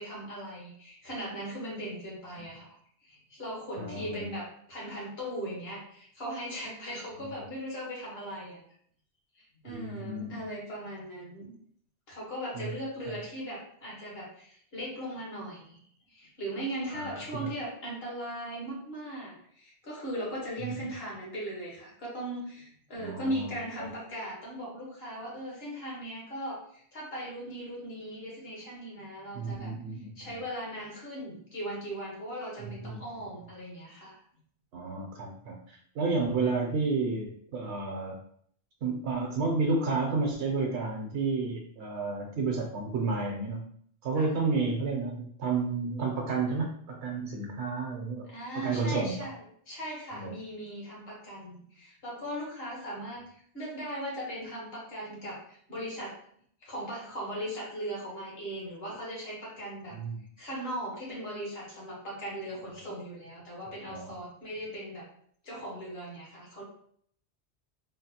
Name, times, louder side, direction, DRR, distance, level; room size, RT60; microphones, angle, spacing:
voice 1, 0.0-2.7 3.0-8.6 9.3-11.5 12.1-15.8 16.1-34.2 44.1-44.3 48.3-49.4 49.7-56.1 56.6-60.0 60.4-65.1 65.4-66.6, equal, 65° left, -4 dB, 1.5 m, -38 dB
voice 2, 3.8-4.3 9.7-10.4 12.5-12.7 16.9-17.5 23.0-23.5 29.3-30.3 32.8-33.0 34.7-38.2 38.8-43.7 44.0-48.3 48.5-49.2 50.1-50.4 59.9-60.2 63.9-64.1, right 4 dB, 75° right, 0 dB, 0.8 m, -31 dB
3.8 x 2.1 x 2.8 m, 0.62 s
omnidirectional pair, 1.1 m